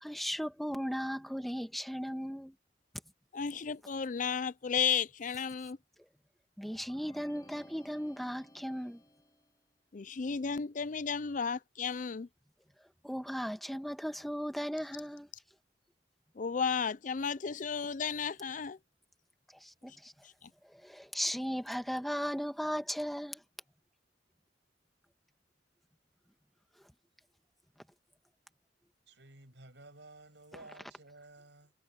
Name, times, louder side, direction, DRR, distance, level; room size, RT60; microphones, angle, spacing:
voice 1, 0.0-2.5 6.6-9.0 13.0-15.3 19.6-20.1 20.6-23.4, equal, ahead, 1.5 m, -36 dB
voice 2, 3.3-5.8 9.9-12.3 16.4-18.8 20.4-20.5, left 6 dB, 45° left, 0.5 m, -33 dB
sound 1, 6.8-9.6, left 1 dB, 20° left, 3.1 m, -57 dB
voice 3, 29.1-31.7, right 2 dB, 70° right, 6.6 m, -54 dB
head